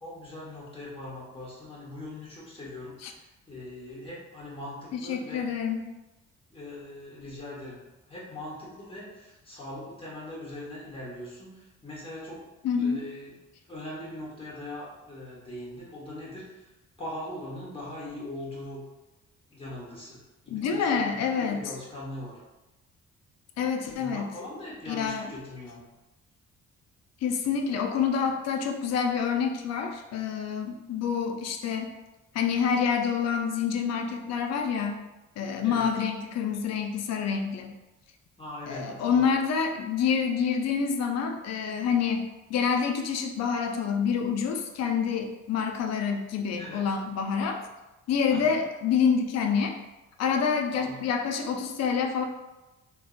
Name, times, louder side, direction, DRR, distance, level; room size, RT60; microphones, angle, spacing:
voice 1, 0.0-5.5 6.5-7.8 8.1-12.4 12.8-13.3 13.7-16.7 17.0-18.8 19.5-22.4 23.9-25.8 35.6-35.9 38.4-39.3 46.5-46.8 48.3-48.5 50.7-51.0, left 1 dB, 20° left, -6 dB, 1.1 m, -41 dB
voice 2, 4.9-5.8 12.6-13.0 20.5-21.6 23.6-24.3 24.9-25.3 27.2-31.9 32.3-35.0 35.4-37.7 38.7-47.6 48.1-49.7 50.2-52.2, left 6 dB, 60° left, 4 dB, 0.4 m, -27 dB
3.3 x 2.0 x 2.4 m, 1.0 s
cardioid pair, 90°, 30 cm